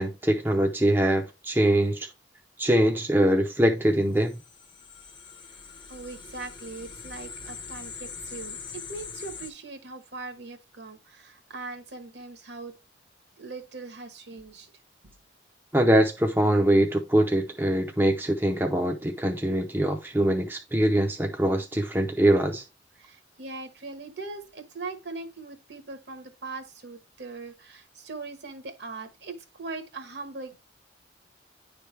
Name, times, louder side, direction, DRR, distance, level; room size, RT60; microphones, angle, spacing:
voice 1, 0.0-2.1 2.6-4.4 15.7-22.6, right 1 dB, 10° right, 0.5 m, -23 dB
sound 1, 4.2-9.5, left 5 dB, 25° left, 0.7 m, -42 dB
voice 2, 5.9-12.7 13.4-14.7 15.0-15.1 23.0-30.6, right 3 dB, 65° right, 1.1 m, -40 dB
10.0 x 3.3 x 3.1 m
head